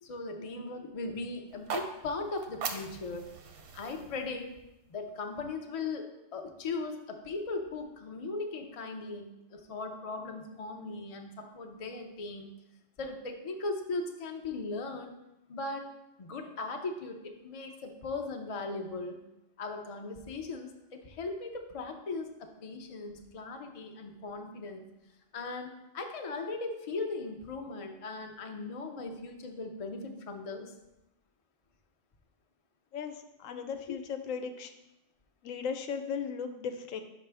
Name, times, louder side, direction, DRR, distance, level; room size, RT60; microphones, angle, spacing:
voice 1, 0.0-3.3 3.7-4.5 4.9-12.5 13.0-15.1 15.5-15.9 16.2-19.2 19.6-24.9 25.3-30.7 33.9-34.0, left 3 dB, 50° left, 4 dB, 0.4 m, -38 dB
sound 1, 1.5-5.6, right 5 dB, 60° right, 0.7 m, -42 dB
voice 2, 32.9-34.7 35.4-37.0, left 6 dB, 85° left, 7 dB, 1.0 m, -37 dB
5.8 x 5.0 x 3.4 m, 0.92 s
omnidirectional pair, 1.3 m